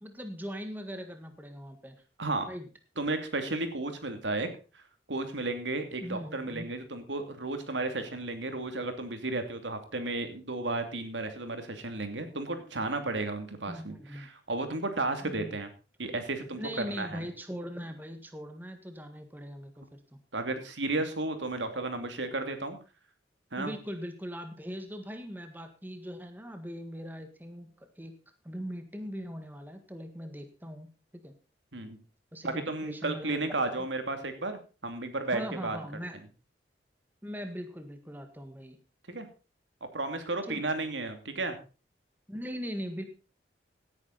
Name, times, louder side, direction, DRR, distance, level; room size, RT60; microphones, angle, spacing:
voice 1, 0.0-2.0 2.5-2.7 6.0-6.7 13.7-14.3 15.2-15.6 16.5-20.2 23.6-28.2 28.4-31.3 32.3-33.4 33.7-33.9 35.3-36.2 37.2-38.8 40.4-40.9 42.3-43.0, equal, 10° right, 7 dB, 1.7 m, -40 dB
voice 2, 3.0-4.5 5.1-15.7 16.0-16.6 16.9-17.2 20.3-22.8 23.5-23.7 31.7-32.0 32.4-35.8 39.1-39.3 39.9-41.6, right 2 dB, 85° right, 7 dB, 2.7 m, -33 dB
17.0 x 9.8 x 4.1 m, 0.35 s
head